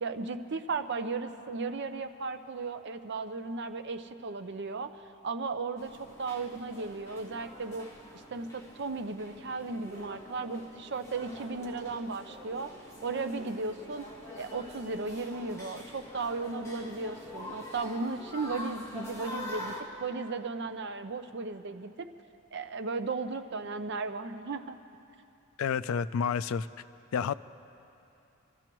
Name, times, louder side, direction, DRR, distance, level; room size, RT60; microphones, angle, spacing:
voice 1, 0.0-7.9 8.3-12.7 13.0-14.1 14.4-22.1 22.5-24.8, right 3 dB, 55° right, 9 dB, 0.6 m, -35 dB
sound 1, 5.8-19.8, left 1 dB, 15° left, 1.4 m, -45 dB
voice 2, 25.6-26.7 27.1-27.3, left 6 dB, 75° left, 16 dB, 0.3 m, -29 dB
26.0 x 13.5 x 3.0 m, 2.8 s
head